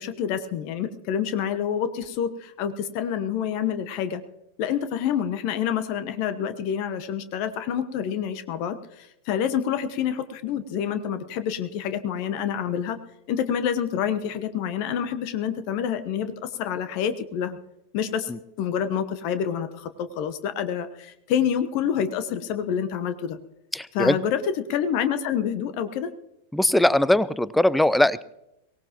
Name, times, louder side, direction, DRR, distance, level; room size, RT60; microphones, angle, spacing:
voice 1, 0.0-4.2 4.6-13.0 13.3-17.6 17.9-18.3 18.6-23.4 23.9-26.1, left 8 dB, 45° left, 11 dB, 1.1 m, -27 dB
voice 2, 23.7-24.1 26.5-28.2, left 1 dB, 5° left, 20 dB, 0.6 m, -20 dB
23.5 x 18.0 x 3.0 m, 0.86 s
figure-of-eight pair, 90°, 0 cm